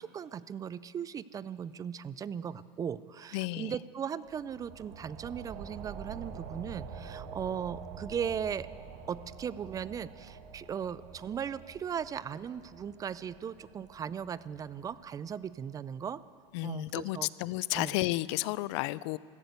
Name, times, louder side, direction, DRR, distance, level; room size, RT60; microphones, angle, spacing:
voice 1, 0.0-8.7 9.1-16.2 16.6-17.3 17.7-18.0, right 8 dB, 25° right, 17 dB, 0.4 m, -38 dB
voice 2, 3.3-3.8 16.5-19.2, left 18 dB, 70° left, 20 dB, 0.4 m, -32 dB
sound 1, 4.2-15.5, right 6 dB, 60° right, 1.5 m, -47 dB
15.0 x 12.0 x 8.0 m, 2.5 s
supercardioid pair, 120°, 15 cm